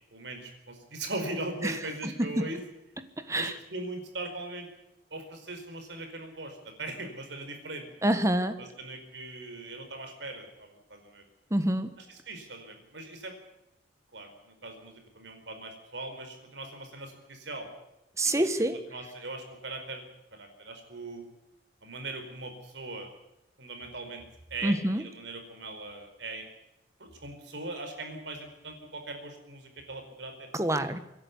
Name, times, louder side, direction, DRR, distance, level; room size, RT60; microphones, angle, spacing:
voice 1, 0.1-2.6 3.4-4.7 5.1-7.9 8.6-11.2 12.0-13.4 14.1-17.7 18.2-20.0 20.3-21.2 21.8-23.1 23.6-24.2 24.5-26.5 27.0-30.5, right 2 dB, 75° right, 5 dB, 4.8 m, -40 dB
voice 2, 8.0-8.6 11.5-11.9 18.2-18.8 24.6-25.0 30.6-31.0, right 1 dB, 15° right, 10 dB, 1.4 m, -26 dB
25.0 x 11.0 x 9.7 m, 0.90 s
head